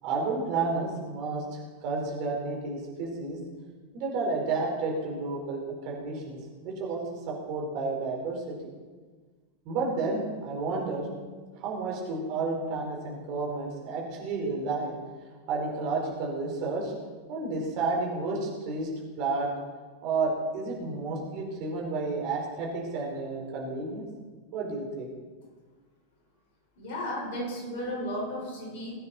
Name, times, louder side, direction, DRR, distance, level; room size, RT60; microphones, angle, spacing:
voice 1, 0.0-3.4 3.9-6.4 6.6-8.4 9.6-11.1 11.5-14.9 15.5-16.9 17.3-18.9 19.2-19.6 20.0-24.0 24.5-25.1, right 3 dB, 40° right, -2 dB, 4.9 m, -31 dB
voice 2, 26.8-28.9, equal, 50° left, -1 dB, 5.7 m, -34 dB
22.5 x 9.5 x 4.5 m, 1.4 s
figure-of-eight pair, 90°, 0 cm